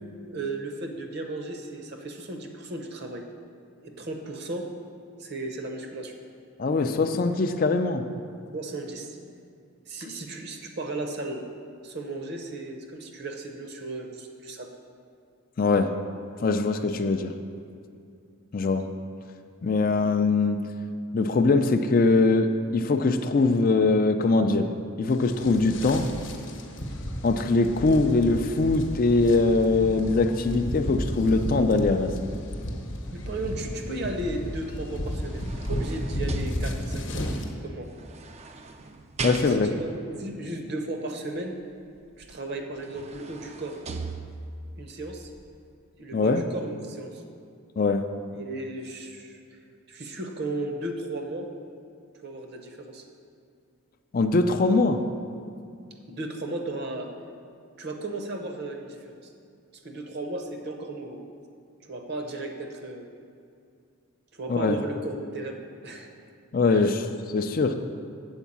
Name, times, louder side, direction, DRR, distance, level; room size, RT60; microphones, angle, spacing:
voice 1, 0.3-3.2 3.8-4.7 5.2-6.1 8.5-9.1 9.9-11.4 11.8-14.7 28.0-28.1 33.1-37.2 37.6-37.9 39.5-41.6 42.2-43.8 44.8-45.3 46.0-47.2 48.3-49.4 49.9-51.5 52.2-53.0 56.1-57.1 57.8-59.3 59.8-61.2 61.8-63.0 64.3-66.1 66.7-66.9, right 2 dB, 50° right, 3 dB, 0.8 m, -35 dB
voice 2, 6.6-8.1 15.6-15.9 16.4-17.3 18.5-18.9 19.6-20.6 21.1-24.7 25.0-26.1 27.2-32.3 39.2-39.7 46.1-46.4 47.8-48.0 54.1-55.0 64.5-64.8 66.5-67.7, left 3 dB, 40° left, 7 dB, 0.4 m, -22 dB
sound 1, 25.1-37.5, equal, 55° left, 0.9 m, -33 dB
sound 2, 34.9-37.1 38.0-40.0 42.2-42.3 42.7-44.7 45.2-45.4, right 3 dB, 30° right, 0.4 m, -38 dB
8.0 x 4.6 x 7.2 m, 2.4 s
head